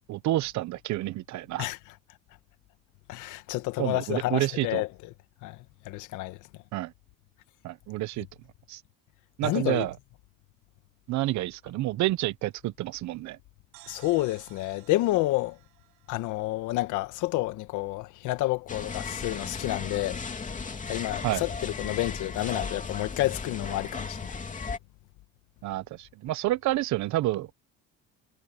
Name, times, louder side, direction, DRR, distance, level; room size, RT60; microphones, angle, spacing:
voice 1, 0.1-1.7 3.8-4.8 6.7-6.9 7.6-8.3 8.7-8.8 9.4-9.9 11.1-13.4 21.2-21.4 25.6-27.5, right 16 dB, 70° right, 1.1 m, -29 dB
voice 2, 3.1-4.9 5.4-5.6 5.9-6.4 9.4-9.9 13.9-15.6 16.1-20.2 20.9-24.4, left 18 dB, 75° left, 1.7 m, -29 dB
sound 1, 13.7-17.4, right 26 dB, 90° right, 7.8 m, -56 dB
sound 2, 18.7-24.8, left 4 dB, 25° left, 3.1 m, -36 dB
supercardioid pair, 95°, 30 cm